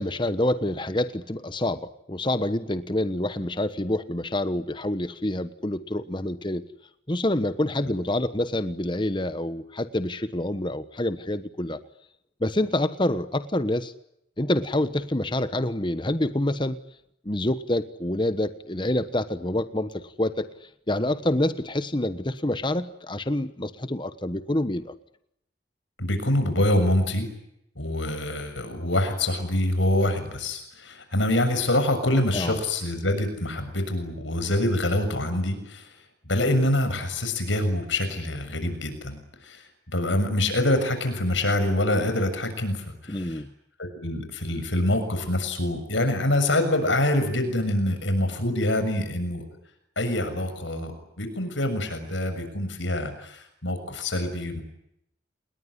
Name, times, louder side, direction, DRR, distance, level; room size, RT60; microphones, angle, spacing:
voice 1, 0.0-6.6 7.1-11.8 12.4-13.9 14.4-16.8 17.2-20.5 20.9-24.9 32.3-32.6 43.1-43.5, left 1 dB, 25° left, 12 dB, 1.2 m, -27 dB
voice 2, 26.0-27.3 27.8-35.9 36.3-43.4 43.8-49.5 50.0-54.6, left 1 dB, 85° left, 8 dB, 6.9 m, -25 dB
28.5 x 21.0 x 10.0 m, 0.80 s
head